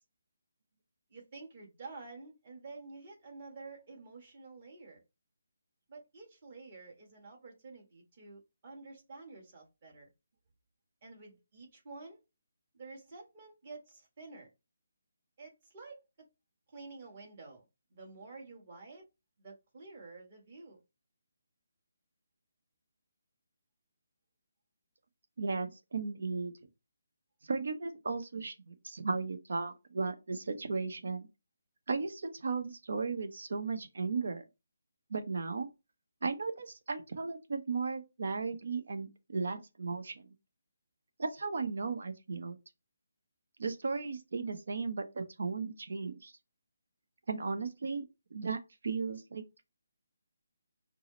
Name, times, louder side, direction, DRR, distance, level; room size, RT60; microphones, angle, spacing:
voice 1, 1.1-5.0 5.9-10.1 11.0-12.2 12.7-14.5 15.4-16.0 16.7-17.6 17.9-19.1 19.4-20.8, right 3 dB, 35° right, 1.5 m, -50 dB
voice 2, 25.4-26.5 27.5-31.3 31.9-34.4 35.1-35.7 36.2-40.3 41.2-42.6 43.6-46.3 47.3-48.1 48.3-48.6 48.8-49.7, right 4 dB, 70° right, 0.8 m, -35 dB
4.8 x 2.0 x 3.8 m
hypercardioid pair, 165°, 0 cm